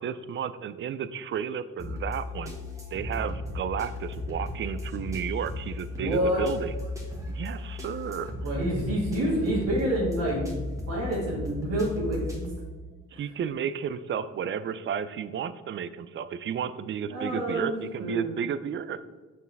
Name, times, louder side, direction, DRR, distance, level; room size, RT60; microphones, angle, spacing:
voice 1, 0.0-2.5 2.9-6.7 7.3-8.3 13.1-19.0, right 8 dB, 40° right, 14 dB, 0.4 m, -32 dB
sound 1, 1.8-12.5, left 2 dB, 10° right, 1.6 m, -35 dB
voice 2, 6.0-6.4 8.4-10.6 10.9-12.5 13.1-13.2 17.1-18.3, right 1 dB, 65° right, -6 dB, 1.8 m, -28 dB
6.1 x 4.6 x 3.4 m, 1.3 s
cardioid pair, 90°, 30 cm